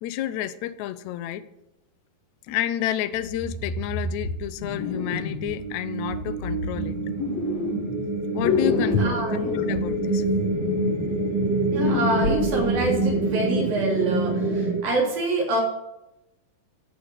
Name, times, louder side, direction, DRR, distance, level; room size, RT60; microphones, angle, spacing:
voice 1, 0.0-1.4 2.5-6.9 8.3-10.2, left 12 dB, 85° left, 11 dB, 1.6 m, -30 dB
sound 1, 3.1-5.6 6.1-8.1 8.4-13.2, left 5 dB, 55° left, 2.3 m, -29 dB
sound 2, 4.5-14.8, right 2 dB, 15° right, 2.5 m, -26 dB
voice 2, 9.0-9.6 11.7-15.6, right 2 dB, 70° right, -1 dB, 5.1 m, -26 dB
13.5 x 6.6 x 7.9 m, 0.89 s
omnidirectional pair, 4.2 m